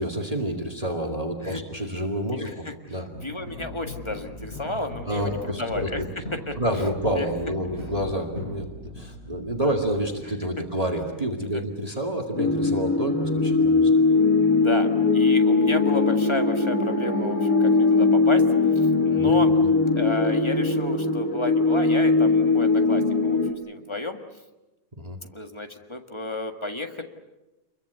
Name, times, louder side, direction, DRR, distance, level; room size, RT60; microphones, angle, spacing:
voice 1, 0.0-2.5 2.9-3.1 5.1-6.1 6.6-13.9 19.2-19.3 25.0-25.2, equal, 25° right, 4 dB, 2.3 m, -28 dB
voice 2, 2.3-6.0 6.5-6.8 7.1-7.3 9.4-9.8 11.5-11.6 14.4-14.9 15.1-19.5 20.0-24.2 25.3-27.0, left 2 dB, 20° left, 6 dB, 1.8 m, -32 dB
sound 1, 3.1-10.4, left 1 dB, 50° left, 8.0 m, -39 dB
sound 2, 12.3-23.5, left 3 dB, 90° left, 2.5 m, -20 dB
28.0 x 22.5 x 8.2 m, 1.0 s
omnidirectional pair, 1.5 m